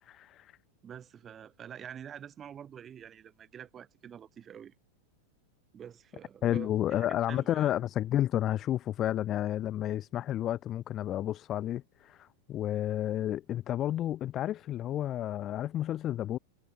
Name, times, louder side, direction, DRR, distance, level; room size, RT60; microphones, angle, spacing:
voice 1, 0.1-0.5 6.4-16.4, left 12 dB, 30° left, 1.2 m, -31 dB
voice 2, 0.8-4.7 5.7-7.8, right 8 dB, 25° right, 6.9 m, -47 dB
figure-of-eight pair, 90°, 0 cm